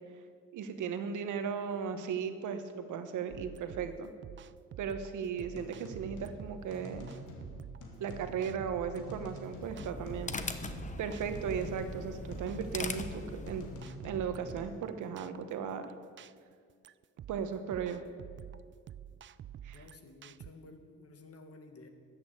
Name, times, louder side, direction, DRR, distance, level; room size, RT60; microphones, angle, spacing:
voice 1, 0.5-4.1 4.8-7.1 8.0-13.6 14.0-15.9 17.3-18.0 19.6-19.8, right 7 dB, 80° right, 9 dB, 1.2 m, -36 dB
sound 1, 3.3-20.5, right 10 dB, 40° right, 0.4 m, -49 dB
sound 2, 5.4-14.7, left 1 dB, 75° left, 2.4 m, -49 dB
sound 3, 9.4-13.9, left 3 dB, 25° left, 0.9 m, -41 dB
voice 2, 19.7-21.9, left 3 dB, 50° left, 6 dB, 1.7 m, -53 dB
13.0 x 8.7 x 8.0 m, 2.1 s
cardioid pair, 90°, 30 cm